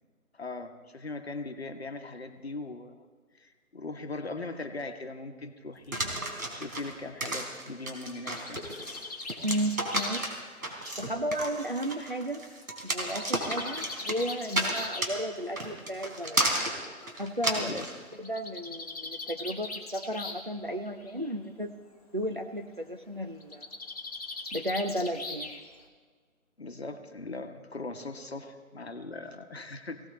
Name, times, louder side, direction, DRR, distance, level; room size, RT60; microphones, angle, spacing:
voice 1, 0.3-3.0 3.3-5.9 6.5-8.6 17.6-17.9 26.6-30.0, left 3 dB, 45° left, 6 dB, 1.2 m, -39 dB
sound 1, 5.9-18.0, right 1 dB, 75° right, 3.8 m, -32 dB
Bird, 7.9-11.7 12.8-15.1 16.2-16.3 16.7-16.8 17.0-17.1 18.1-20.5 20.8-21.3 23.4-25.8, left 2 dB, 25° left, 1.2 m, -41 dB
voice 2, 9.4-10.3 11.0-12.4 12.8-16.4 17.2-17.8 18.2-21.7 22.1-23.7 24.5-25.6, equal, 35° right, 4 dB, 0.6 m, -34 dB
22.0 x 17.0 x 3.2 m, 1.5 s
figure-of-eight pair, 165°, 44 cm